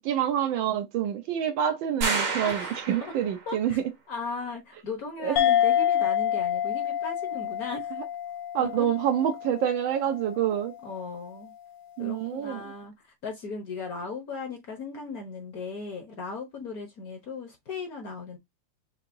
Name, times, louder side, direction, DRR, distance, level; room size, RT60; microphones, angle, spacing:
voice 1, 0.0-3.8 5.2-5.4 8.5-10.7 12.0-12.6, right 10 dB, 70° right, 1.3 m, -27 dB
sound 1, 2.0-3.5, right 4 dB, 50° right, 1.1 m, -30 dB
voice 2, 2.4-3.1 3.5-3.8 4.1-7.9 8.6-8.9 10.8-11.5 12.0-18.4, left 4 dB, 55° left, 1.2 m, -37 dB
sound 2, 5.4-10.3, left 10 dB, 75° left, 1.1 m, -27 dB
5.9 x 2.7 x 2.6 m
omnidirectional pair, 2.4 m